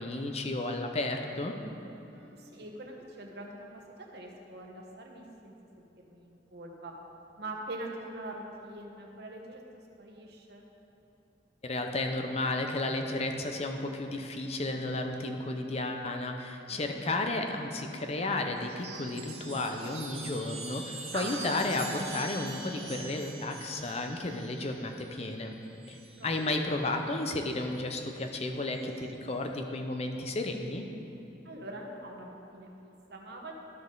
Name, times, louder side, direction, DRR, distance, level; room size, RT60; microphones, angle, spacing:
voice 1, 0.0-1.6 11.6-25.6 25.9-30.9, left 2 dB, 35° left, 4 dB, 0.6 m, -33 dB
voice 2, 2.0-6.9 7.4-9.6 10.0-10.6 16.7-16.9 21.1-21.4 26.2-26.5 31.4-33.5, right 2 dB, 60° right, 0 dB, 1.1 m, -44 dB
Chime, 18.6-26.4 27.6-28.3, right 3 dB, 35° right, 1.1 m, -44 dB
13.5 x 5.5 x 3.9 m, 3.0 s
head